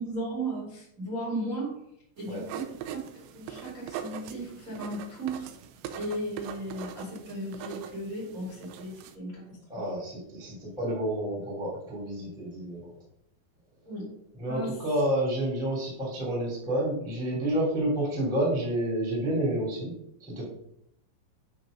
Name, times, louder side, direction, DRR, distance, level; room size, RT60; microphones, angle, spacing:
voice 1, 0.0-1.8 2.2-5.5 6.0-9.4 9.7-9.8 13.8-14.1 14.4-14.8, right 1 dB, 35° right, -5 dB, 1.3 m, -36 dB
sound 1, 2.2-9.2, right 8 dB, 80° right, 2.6 m, -42 dB
voice 2, 9.7-12.9 14.4-19.9 20.2-20.5, right 1 dB, ahead, -4 dB, 1.2 m, -29 dB
9.2 x 3.1 x 5.1 m, 0.74 s
omnidirectional pair, 5.6 m